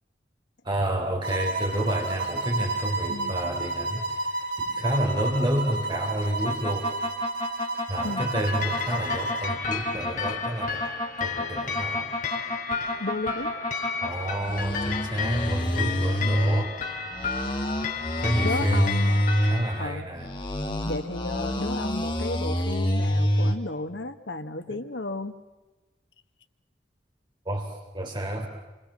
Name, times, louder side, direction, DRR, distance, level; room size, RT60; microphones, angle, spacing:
voice 1, 0.6-4.4 4.7-6.9 7.9-10.9 11.2-12.1 14.0-16.8 18.2-19.0 19.4-20.3 24.7-24.8 27.5-28.5, right 1 dB, 25° right, 2 dB, 3.6 m, -29 dB
sound 1, 1.2-9.6, right 3 dB, 65° right, 3.7 m, -31 dB
sound 2, 6.4-14.1 14.4-16.6 17.1-19.6 20.2-23.6, equal, 25° left, 2.9 m, -27 dB
sound 3, 8.2-19.8, left 6 dB, 45° left, 3.3 m, -33 dB
voice 2, 13.0-13.5 16.2-16.4 18.4-19.3 19.8-20.1 20.9-25.4, left 2 dB, 75° left, 9 dB, 1.6 m, -33 dB
28.5 x 26.0 x 7.6 m, 1.2 s
head